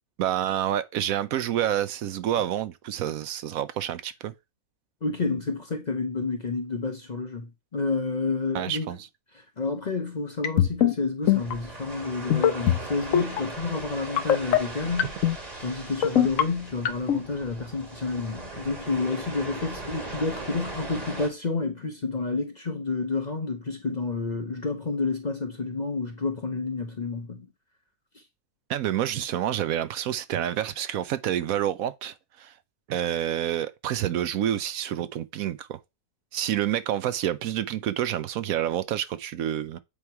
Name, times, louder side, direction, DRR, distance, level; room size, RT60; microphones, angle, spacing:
voice 1, 0.2-4.3 8.5-9.1 28.7-32.5 32.9-35.8 36.3-39.8, right 11 dB, 75° right, 1.0 m, -28 dB
voice 2, 5.0-8.9 9.6-15.2 15.6-27.5, left 3 dB, 40° left, 0.7 m, -30 dB
sound 1, 10.4-10.9 11.3-11.5 12.3-12.8 13.1-13.4 14.2-14.6 15.0-15.4 16.0-16.4 16.8-17.2, left 11 dB, 65° left, 1.1 m, -20 dB
sound 2, 11.2-21.3, right 2 dB, 25° right, 1.7 m, -39 dB
8.6 x 3.1 x 4.7 m
omnidirectional pair, 1.6 m